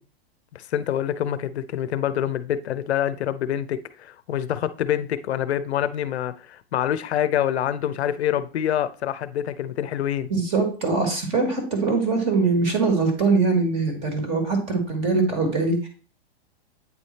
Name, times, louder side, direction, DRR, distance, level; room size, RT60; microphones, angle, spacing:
voice 1, 0.5-10.3, left 10 dB, 85° left, 0.7 m, -26 dB
voice 2, 10.3-15.9, right 3 dB, 20° right, 1.2 m, -22 dB
8.5 x 3.3 x 4.1 m
hypercardioid pair, 170°, 32 cm